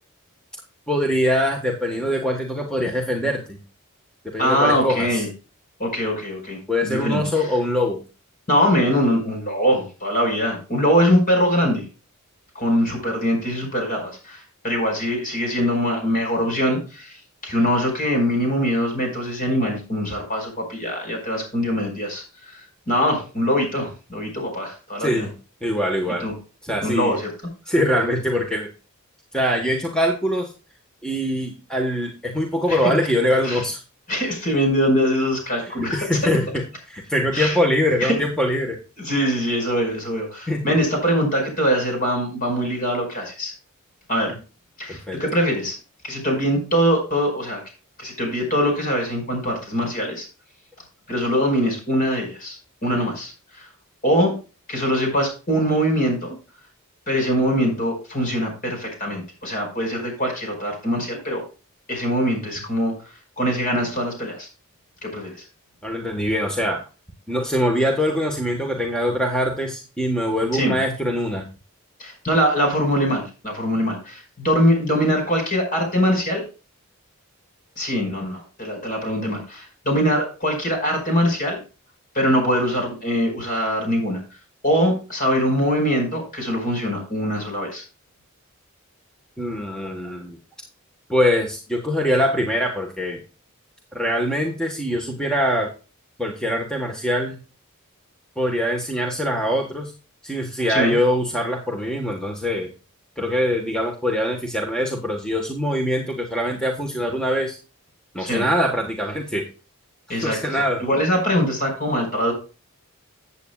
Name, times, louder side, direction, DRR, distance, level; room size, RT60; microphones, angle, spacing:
voice 1, 0.9-3.6 4.2-5.2 6.7-8.0 25.0-25.3 25.6-26.3 26.6-27.2 27.7-28.7 29.3-30.5 31.0-33.8 35.7-38.8 40.5-40.6 44.3-44.4 44.9-45.2 65.8-66.8 67.3-71.4 89.4-90.4 91.1-93.2 93.9-95.7 96.2-97.4 98.4-99.9 100.2-102.7 103.2-107.6 108.1-109.4 110.1-110.9, equal, 5° left, 1 dB, 1.2 m, -23 dB
voice 2, 4.4-5.3 5.8-7.5 8.5-11.8 12.5-17.2 17.4-25.3 26.2-26.3 26.8-27.3 32.7-32.8 33.4-33.6 34.1-36.0 37.3-37.6 38.0-38.1 39.0-43.5 44.1-44.3 44.8-45.7 46.0-47.6 48.0-50.3 51.1-52.6 52.8-53.7 54.0-54.3 54.7-56.4 57.1-61.4 61.9-62.9 63.4-64.5 65.0-65.4 70.5-70.8 72.0-76.4 77.7-81.6 82.1-84.2 84.6-87.8 100.7-101.0 108.2-108.4 110.1-112.3, equal, 40° left, 3 dB, 5.2 m, -22 dB
15.0 x 8.4 x 2.3 m, 0.33 s
head